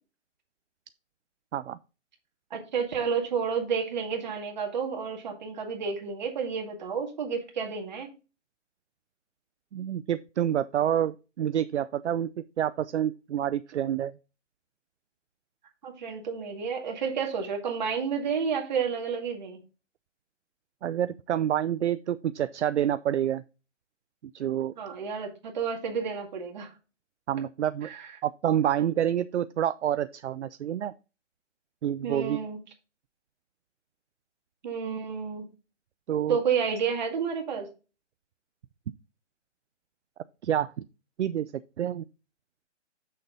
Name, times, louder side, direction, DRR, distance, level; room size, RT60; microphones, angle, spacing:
voice 1, 2.5-8.1 15.8-19.6 24.8-26.7 27.8-28.1 32.0-32.6 34.6-35.5 36.3-37.7, right 6 dB, 35° right, 2.1 m, -30 dB
voice 2, 9.7-12.3 12.6-14.1 20.8-23.4 24.3-24.7 27.3-27.9 28.2-30.9 31.8-32.4 36.1-36.4 40.4-40.7 41.2-41.5 41.8-42.0, right 10 dB, 65° right, 0.5 m, -28 dB
6.8 x 6.6 x 3.8 m
hypercardioid pair, 170°, 37 cm